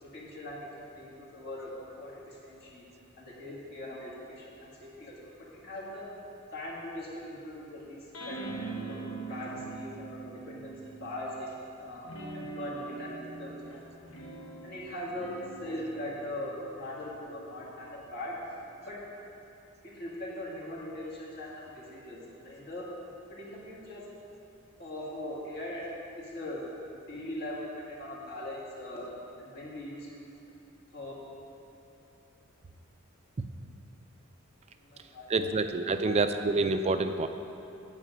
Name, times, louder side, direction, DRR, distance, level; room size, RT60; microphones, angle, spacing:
voice 1, 0.0-2.8 3.2-4.4 4.8-5.2 5.6-6.0 6.5-8.6 8.9-9.0 9.3-11.5 11.8-14.1 14.6-15.3 15.6-18.4 18.8-19.0 19.8-22.9 23.3-24.0 24.8-25.8 26.2-26.6 27.1-29.0 29.4-30.1 30.9-31.1 35.1-35.3 36.0-36.2, left 1 dB, 50° left, -5 dB, 1.9 m, -40 dB
sound 1, 8.1-11.5 12.0-18.8, right 3 dB, 80° left, 1.2 m, -43 dB
voice 2, 35.3-37.3, right 3 dB, 30° right, 9 dB, 0.4 m, -27 dB
9.2 x 5.1 x 7.8 m, 3.0 s
head